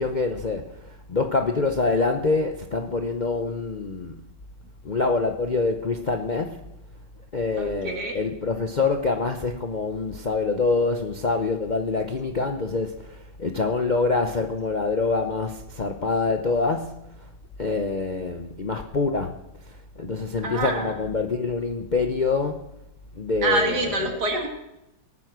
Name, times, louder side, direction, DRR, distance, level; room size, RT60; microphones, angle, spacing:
voice 1, 0.0-4.2 4.8-6.6 7.3-17.0 17.6-19.4 20.0-22.6 23.2-24.2, left 3 dB, 85° left, 0.4 m, -25 dB
voice 2, 7.6-8.2 20.4-21.0 23.4-24.5, right 2 dB, 50° right, 2.7 m, -26 dB
18.5 x 9.3 x 6.1 m
omnidirectional pair, 2.2 m